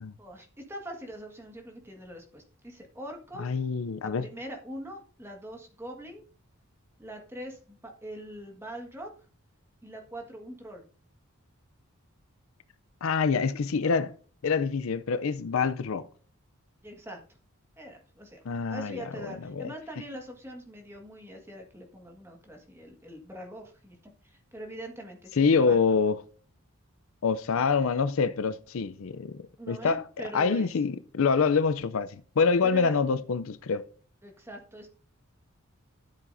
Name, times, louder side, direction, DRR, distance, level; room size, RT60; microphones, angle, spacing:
voice 1, 0.2-3.5 4.0-6.2 7.0-9.1 9.8-10.9 16.8-17.2 17.8-24.0 24.2-26.0 29.6-30.7 32.6-32.9 34.2-34.9, equal, 10° right, 1.6 m, -43 dB
voice 2, 3.4-4.2 13.0-14.1 14.4-16.1 18.5-19.7 25.4-26.2 27.2-30.0 30.3-33.8, left 5 dB, 65° left, 0.5 m, -26 dB
13.0 x 7.5 x 2.6 m
head